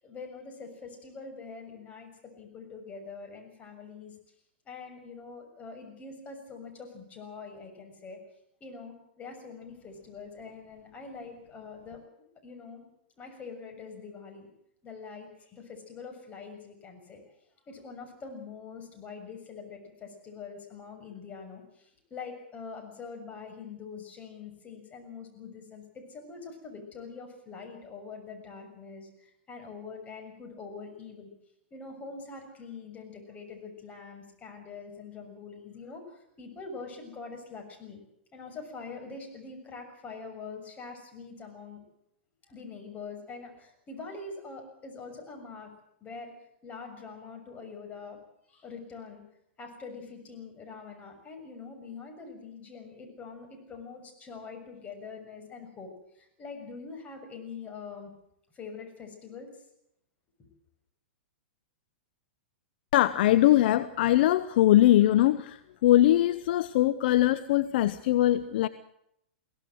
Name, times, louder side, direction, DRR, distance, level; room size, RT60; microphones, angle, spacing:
voice 1, 0.0-2.1 2.3-4.1 4.6-8.2 8.6-12.0 12.4-12.8 13.2-14.5 14.8-17.2 17.7-31.3 31.7-38.0 38.3-41.8 42.5-45.7 46.0-46.3 46.6-48.2 48.5-49.2 49.6-58.1 58.5-59.5 60.4-60.5, left 4 dB, 25° left, 3 dB, 6.8 m, -44 dB
voice 2, 62.9-68.7, left 14 dB, 55° left, 13 dB, 0.9 m, -22 dB
22.5 x 17.0 x 7.8 m, 0.75 s
hypercardioid pair, 110°, 6 cm